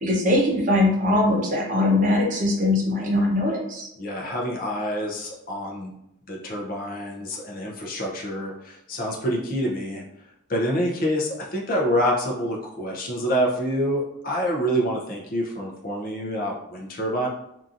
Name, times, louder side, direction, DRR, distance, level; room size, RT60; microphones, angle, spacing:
voice 1, 0.0-3.9, left 1 dB, 40° right, -2 dB, 0.6 m, -21 dB
voice 2, 4.0-5.9 6.3-10.0 10.5-17.3, equal, 45° left, -2 dB, 0.5 m, -27 dB
2.8 x 2.5 x 2.4 m, 0.79 s
head